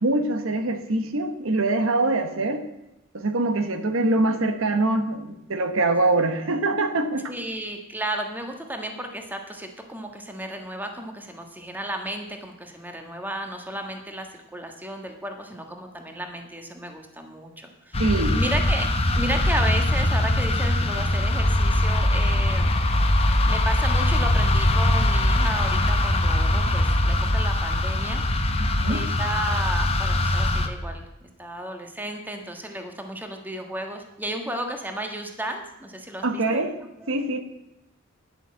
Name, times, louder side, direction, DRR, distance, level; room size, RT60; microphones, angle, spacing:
voice 1, 0.0-2.6 3.1-7.3 18.0-18.4 28.6-29.0 36.2-36.7 37.1-37.4, right 2 dB, 70° right, 8 dB, 1.1 m, -24 dB
voice 2, 7.3-18.0 18.3-18.9 19.1-22.7 23.5-28.2 28.9-31.1 31.4-36.7 37.0-37.2, right 1 dB, 10° right, 4 dB, 1.4 m, -33 dB
sound 1, 17.9-30.7, left 1 dB, 30° left, 1.0 m, -22 dB
11.0 x 7.9 x 7.6 m, 0.92 s
head